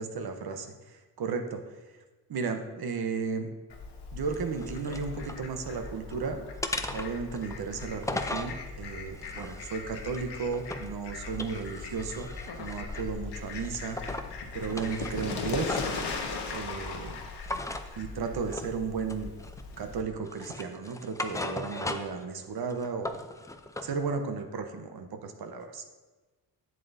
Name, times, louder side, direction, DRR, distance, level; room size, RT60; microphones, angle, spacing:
voice 1, 0.0-1.9 2.3-3.5 4.1-6.5 6.9-12.3 12.6-14.0 14.5-15.8 16.5-17.2 18.0-19.3 19.8-23.2 23.8-25.8, right 5 dB, 55° right, 6 dB, 0.9 m, -34 dB
Fowl, 3.7-20.0, left 4 dB, 65° left, 1.1 m, -39 dB
sound 1, 4.2-5.4 5.8-6.2 6.6-8.6 9.1-10.9 11.3-13.1 13.5-14.3 14.6-16.0 17.4-17.9 18.5-18.8 19.1-19.8 20.2-22.2 22.6-23.9, left 2 dB, 10° left, 0.4 m, -38 dB
8.2 x 7.6 x 2.7 m, 1.2 s
cardioid pair, 80°, 45 cm